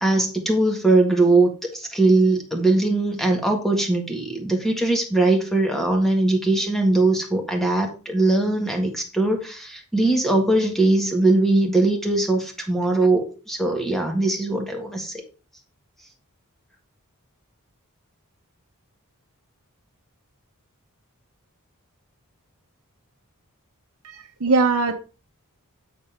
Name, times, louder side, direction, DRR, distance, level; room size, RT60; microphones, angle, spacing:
voice 1, 0.0-15.1, right 2 dB, ahead, 3 dB, 1.7 m, -20 dB
voice 2, 24.0-24.9, right 3 dB, 70° right, 4 dB, 0.9 m, -21 dB
8.9 x 4.1 x 5.0 m, 0.35 s
head